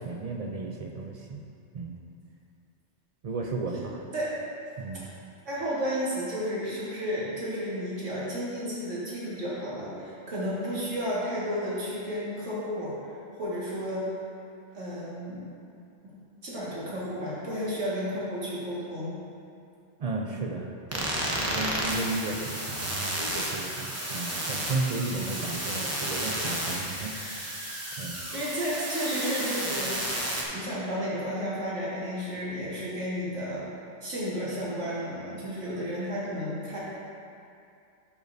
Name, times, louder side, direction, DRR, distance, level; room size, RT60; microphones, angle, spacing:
voice 1, 0.0-1.4 1.7-2.0 3.2-4.0 4.8-5.1 20.0-27.7 28.0-28.2, right 3 dB, 55° right, 1 dB, 0.4 m, -34 dB
voice 2, 5.5-14.0 14.7-15.4 16.4-19.1 28.3-29.9 30.5-33.6 34.0-36.8, equal, 85° right, -9 dB, 2.2 m, -32 dB
sound 1, 20.9-30.4, right 1 dB, 15° right, 0.8 m, -32 dB
12.0 x 5.0 x 2.7 m, 2.5 s
omnidirectional pair, 1.2 m